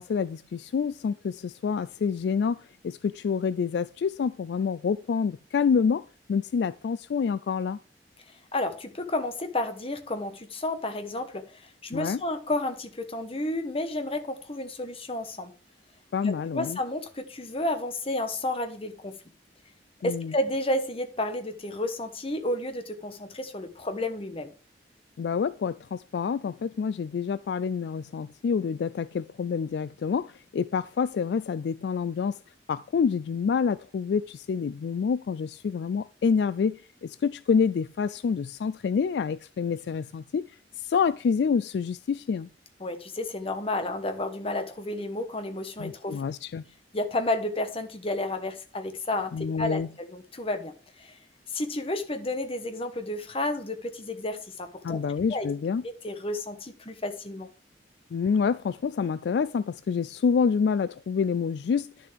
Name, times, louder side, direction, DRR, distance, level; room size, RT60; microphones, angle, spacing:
voice 1, 0.0-6.0 6.3-7.8 11.9-12.2 16.1-16.8 20.0-20.3 25.2-32.4 32.7-40.4 40.8-42.5 45.8-46.6 49.3-49.9 54.8-55.8 58.1-61.9, left 6 dB, 65° left, 0.3 m, -27 dB
voice 2, 8.5-15.5 16.2-19.2 20.0-24.5 42.8-46.2 46.9-50.7 51.0-51.2 51.5-55.0 55.3-55.5 56.0-57.5, left 1 dB, 30° left, 1.2 m, -31 dB
10.5 x 6.8 x 3.4 m
head